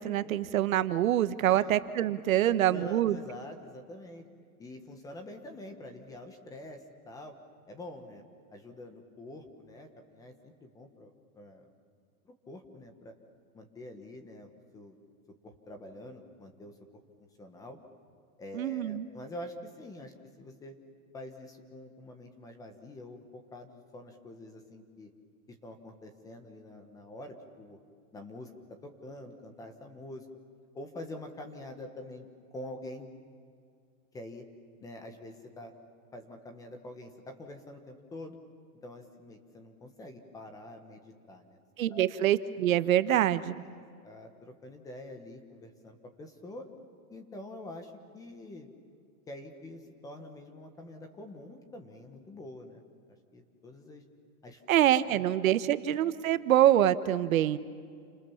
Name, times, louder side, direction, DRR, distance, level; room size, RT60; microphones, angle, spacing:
voice 1, 0.0-3.2 18.5-19.1 41.8-43.6 54.7-57.6, right 12 dB, 65° right, 13 dB, 1.1 m, -25 dB
voice 2, 2.4-4.2 4.6-7.4 7.7-8.2 8.5-11.6 12.2-13.1 13.5-15.0 15.4-16.8 17.2-17.8 18.4-20.7 21.1-25.1 25.5-27.8 28.1-28.5 28.8-30.3 30.7-33.1 34.1-34.4 34.8-35.7 36.1-38.4 38.8-41.6 41.9-42.1 43.6-46.7 47.1-48.7 49.3-52.8 53.3-54.0 54.4-54.8 55.1-55.2 55.5-55.6, left 1 dB, 10° left, 6 dB, 1.2 m, -46 dB
29.5 x 26.5 x 7.1 m, 2.2 s
supercardioid pair, 175°, 44 cm